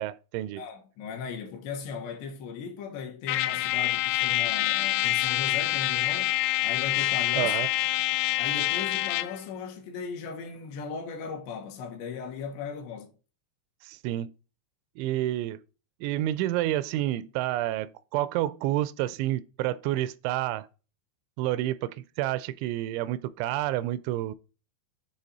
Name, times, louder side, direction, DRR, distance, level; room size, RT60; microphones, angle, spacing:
voice 1, 0.0-0.6 7.4-7.7 13.8-14.3 15.0-15.6 16.0-20.7 21.4-24.3, right 14 dB, 85° right, 2.9 m, -29 dB
voice 2, 0.6-6.3 6.6-7.5 8.4-13.1, left 6 dB, 75° left, 3.3 m, -37 dB
Trumpet, 3.3-9.4, left 18 dB, 90° left, 2.9 m, -26 dB
9.8 x 3.6 x 4.1 m
omnidirectional pair, 5.2 m